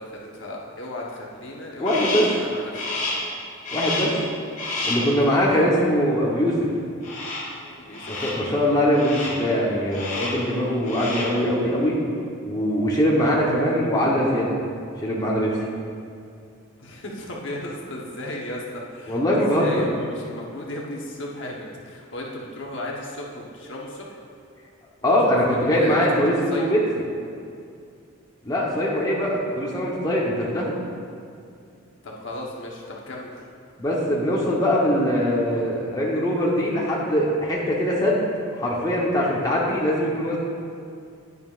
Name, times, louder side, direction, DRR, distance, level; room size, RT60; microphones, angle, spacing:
voice 1, 0.0-3.2 5.4-5.6 7.8-8.1 16.8-24.2 25.0-26.8 32.0-33.3, left 1 dB, 60° left, -2 dB, 1.1 m, -35 dB
Crow, 1.8-2.4 2.7-3.3 3.6-4.2 4.6-5.1 7.0-7.6 7.9-8.5 8.9-9.5 9.9-10.5 10.8-11.4, left 2 dB, 35° left, 2.0 m, -29 dB
voice 2, 1.8-2.2 3.7-4.1 4.8-6.6 8.0-11.9 12.4-14.6 15.0-15.5 19.1-19.8 25.0-26.8 28.5-30.7 33.8-38.3 38.6-40.4, equal, 20° left, -4 dB, 1.0 m, -22 dB
10.5 x 9.6 x 2.5 m, 2.4 s
head